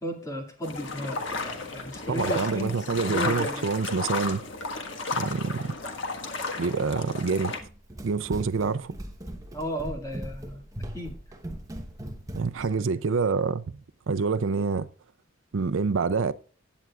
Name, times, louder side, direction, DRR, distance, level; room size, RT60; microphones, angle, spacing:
voice 1, 0.0-3.6 9.5-10.6 10.9-11.2 12.7-13.0, equal, 15° left, 2.2 m, -35 dB
sound 1, 0.6-7.6, left 3 dB, 70° left, 1.6 m, -33 dB
voice 2, 2.1-4.4 5.1-5.7 6.6-7.5 8.0-8.9 12.3-13.6 14.1-14.9 15.5-16.3, right 4 dB, 75° right, 0.5 m, -26 dB
Run, 7.5-12.7, right 1 dB, 15° right, 1.1 m, -39 dB
16.0 x 9.1 x 2.4 m
head